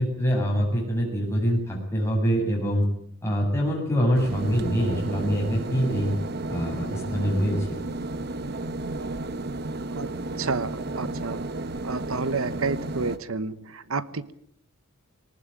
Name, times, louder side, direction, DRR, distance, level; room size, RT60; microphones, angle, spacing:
voice 1, 0.0-2.9 3.2-6.1 6.5-7.7, equal, 15° left, -1 dB, 7.4 m, -24 dB
sound 1, 4.1-13.2, right 2 dB, 50° right, 1.1 m, -33 dB
voice 2, 10.4-11.4 11.8-14.3, right 4 dB, 80° right, 15 dB, 1.1 m, -30 dB
19.5 x 19.0 x 9.0 m, 0.71 s
head